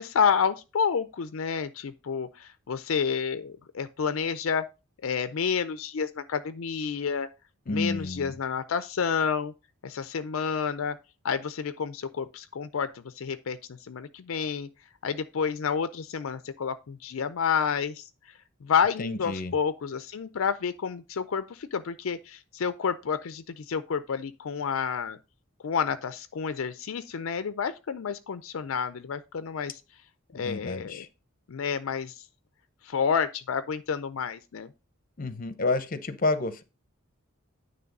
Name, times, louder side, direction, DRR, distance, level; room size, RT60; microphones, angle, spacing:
voice 1, 0.0-4.6 5.0-7.3 7.7-9.5 9.8-11.0 11.2-14.7 15.0-18.0 18.6-25.2 25.6-29.8 30.3-31.1 31.5-32.2 32.8-34.7, left 6 dB, 75° left, 0.4 m, -29 dB
voice 2, 7.7-8.3 19.0-19.5 30.3-31.1 35.2-36.6, left 3 dB, 40° left, 0.7 m, -30 dB
9.4 x 3.3 x 5.2 m
head